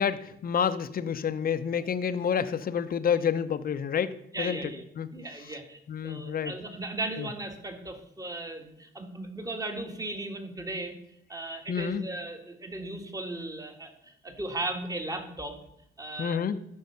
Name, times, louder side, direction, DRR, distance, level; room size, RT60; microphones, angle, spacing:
voice 1, 0.0-4.7 5.0-5.1 5.9-6.5 7.2-7.3 11.7-12.0 16.2-16.6, left 7 dB, 45° left, 12 dB, 0.8 m, -29 dB
voice 2, 4.3-4.8 5.1-11.0 11.3-15.6 16.0-16.4, right 2 dB, 15° right, 5 dB, 1.8 m, -37 dB
13.0 x 5.6 x 5.6 m, 0.77 s
cardioid pair, 90°, 20 cm